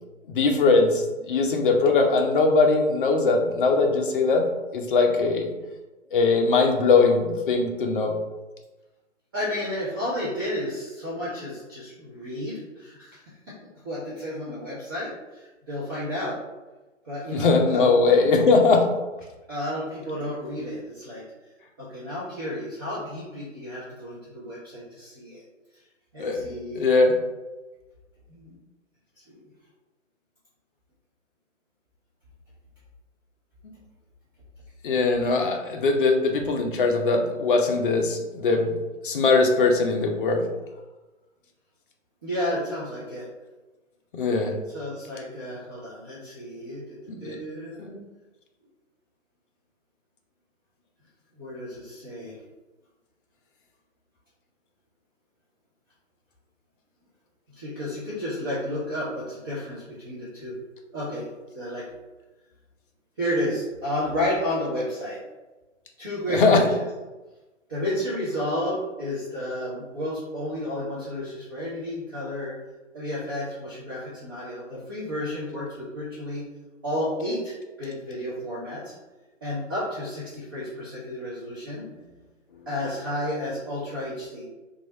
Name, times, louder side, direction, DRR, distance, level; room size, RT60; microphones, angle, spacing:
voice 1, 0.3-4.5 4.7-5.5 6.1-8.1 17.3-18.9 26.2-26.5 26.7-27.1 33.6-33.7 34.8-38.8 39.0-40.5 44.1-44.5 47.1-47.4 47.8-48.0 66.3-66.6, left 3 dB, 45° left, 3 dB, 0.5 m, -21 dB
voice 2, 9.3-13.2 13.5-13.6 13.8-16.4 17.0-17.9 19.5-21.2 21.8-25.4 26.1-26.8 28.3-28.6 29.3-29.4 35.2-35.4 42.2-43.3 44.7-47.0 47.2-47.8 51.4-52.4 57.6-60.5 60.9-61.3 61.5-61.8 63.2-65.2 66.0-66.9 67.7-72.5 72.9-76.4 76.8-78.9 79.4-81.8 82.7-84.5, left 1 dB, 20° right, -10 dB, 0.4 m, -31 dB
3.0 x 2.4 x 2.7 m, 1.1 s
figure-of-eight pair, 130°, 38 cm